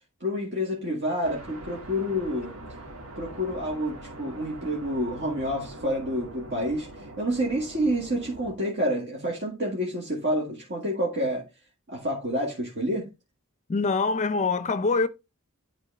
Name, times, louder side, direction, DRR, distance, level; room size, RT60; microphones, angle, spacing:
voice 1, 0.2-2.6 3.2-6.9 7.2-11.4 11.9-13.1, equal, 55° right, 2.1 m, -28 dB
sound 1, 1.2-8.5, right 1 dB, 85° right, 2.1 m, -43 dB
voice 2, 13.7-15.1, left 4 dB, 35° left, 0.5 m, -24 dB
11.5 x 4.3 x 3.3 m
head